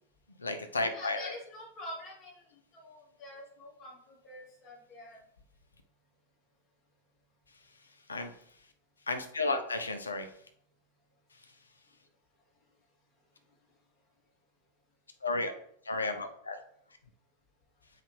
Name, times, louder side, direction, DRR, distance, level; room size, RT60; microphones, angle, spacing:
voice 1, 0.4-1.3 8.1-8.3 9.1-10.3 15.2-15.5 15.9-16.6, left 3 dB, 75° left, 7 dB, 0.8 m, -32 dB
voice 2, 0.9-5.2, left 1 dB, 25° left, -4 dB, 2.8 m, -46 dB
7.8 x 4.9 x 3.3 m, 0.69 s
figure-of-eight pair, 90°, 0 cm